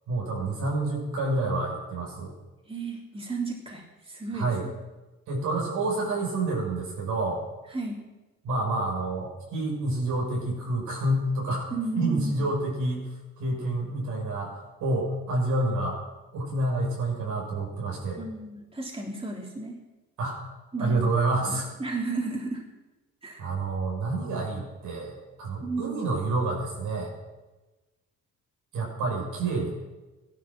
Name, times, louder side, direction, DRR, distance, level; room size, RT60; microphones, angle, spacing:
voice 1, 0.1-2.3 4.3-4.6 5.3-7.4 8.4-16.0 16.3-18.2 20.2-20.4 20.8-21.7 23.4-27.1 28.7-29.7, right 2 dB, 85° right, -2 dB, 6.5 m, -28 dB
voice 2, 2.7-4.6 7.7-8.0 11.7-12.5 18.2-19.8 20.7-21.1 21.4-22.6 23.2-23.4 25.6-26.1, right 3 dB, 20° right, -2 dB, 3.4 m, -33 dB
15.5 x 12.0 x 6.2 m, 1.1 s
cardioid pair, 90°, 30 cm